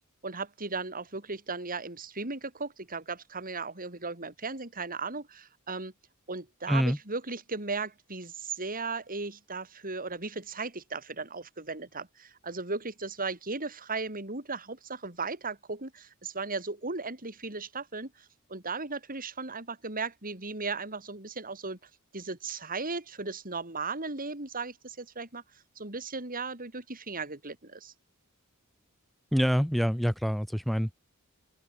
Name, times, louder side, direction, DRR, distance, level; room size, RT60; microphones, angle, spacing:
voice 1, 0.2-5.9 6.3-18.1 18.5-21.8 22.1-25.4 25.8-27.9, right 4 dB, 40° right, 6.7 m, -36 dB
voice 2, 6.7-7.0 29.3-30.9, equal, ahead, 2.1 m, -26 dB
open air
head